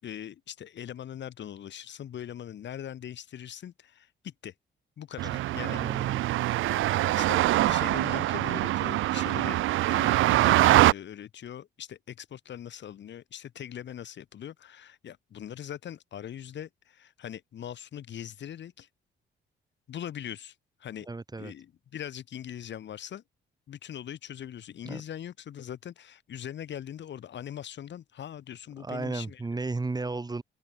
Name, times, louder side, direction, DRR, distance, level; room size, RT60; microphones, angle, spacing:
voice 1, 0.0-4.5 5.0-5.8 7.2-9.6 9.9-18.9 19.9-20.5 20.8-21.1 21.4-23.2 23.7-29.4, left 10 dB, 65° left, 4.7 m, -41 dB
sound 1, 5.2-10.9, right 16 dB, 80° right, 0.8 m, -24 dB
voice 2, 5.7-6.2 21.1-21.5 24.9-25.0 28.8-30.4, right 3 dB, 20° right, 1.8 m, -34 dB
open air
cardioid pair, 90°, 20 cm